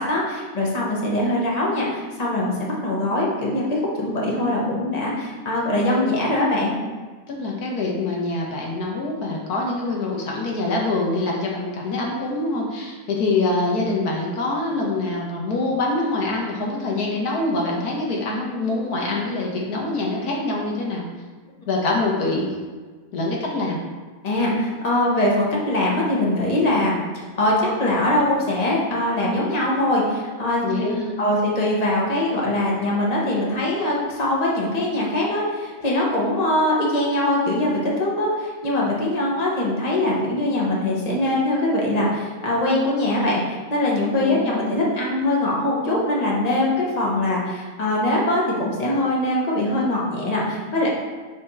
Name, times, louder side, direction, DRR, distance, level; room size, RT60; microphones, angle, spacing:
voice 1, 0.0-6.7 24.2-30.9 31.2-50.9, left 1 dB, 30° left, -4 dB, 1.2 m, -22 dB
voice 2, 7.3-21.0 21.7-22.5 23.1-23.8 30.6-31.1 44.2-44.7, left 2 dB, 85° left, -2 dB, 1.6 m, -25 dB
5.0 x 3.4 x 5.4 m, 1.4 s
omnidirectional pair, 1.6 m